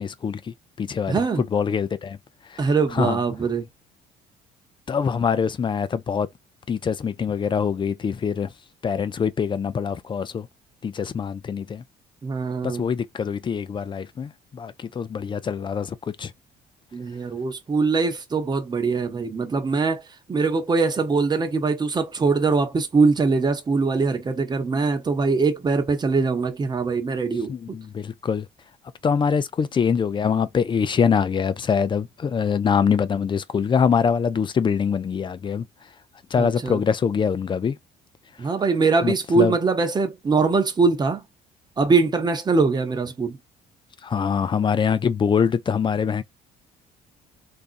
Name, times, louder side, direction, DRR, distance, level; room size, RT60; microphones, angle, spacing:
voice 1, 0.0-2.2 2.5-3.2 4.9-6.3 6.7-8.5 8.8-10.5 10.8-11.8 12.6-16.3 27.5-28.5 29.0-35.7 36.3-37.8 39.0-39.6 44.0-46.2, left 6 dB, 30° left, 0.4 m, -24 dB
voice 2, 1.1-1.4 2.6-3.7 12.2-12.9 16.9-20.0 20.3-27.5 36.4-36.8 38.4-41.2 41.8-43.4, right 4 dB, 25° right, 0.8 m, -22 dB
3.5 x 2.6 x 2.5 m
cardioid pair, 110°, 17 cm